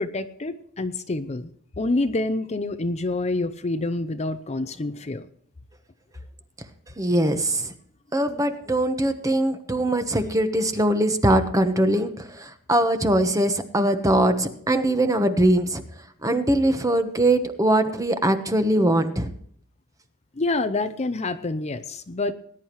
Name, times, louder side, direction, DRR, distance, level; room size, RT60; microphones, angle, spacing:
voice 1, 0.0-1.5 1.8-5.2 20.4-22.3, left 2 dB, 30° left, 10 dB, 0.6 m, -27 dB
voice 2, 7.0-7.7 8.1-12.1 12.4-15.8 16.2-19.3, right 1 dB, 15° right, 8 dB, 1.1 m, -21 dB
20.0 x 10.5 x 3.1 m, 0.63 s
head